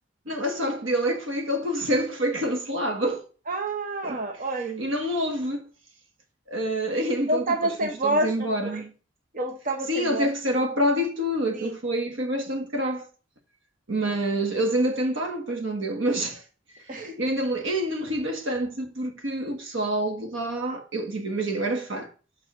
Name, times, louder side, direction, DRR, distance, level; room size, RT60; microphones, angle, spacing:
voice 1, 0.3-3.2 4.0-4.2 4.8-5.7 6.5-8.9 9.9-13.1 13.9-16.4 16.9-22.1, right 1 dB, 85° right, 1.4 m, -27 dB
voice 2, 3.5-4.8 7.3-8.8 9.3-10.3 11.5-11.7 16.9-17.1, right 2 dB, 45° right, 1.0 m, -28 dB
6.6 x 5.5 x 3.7 m
head